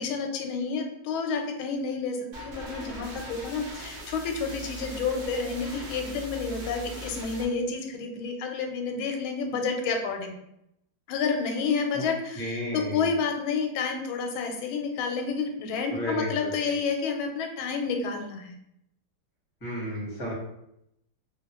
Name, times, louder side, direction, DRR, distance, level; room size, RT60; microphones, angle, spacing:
voice 1, 0.0-10.3 11.1-18.5, left 5 dB, 90° left, 3 dB, 1.4 m, -30 dB
sound 1, 2.3-7.4, right 2 dB, 55° right, 0.6 m, -40 dB
voice 2, 12.3-13.1 15.9-16.5 19.6-20.3, equal, 15° left, -6 dB, 0.8 m, -32 dB
3.0 x 2.6 x 2.9 m, 0.80 s
omnidirectional pair, 2.2 m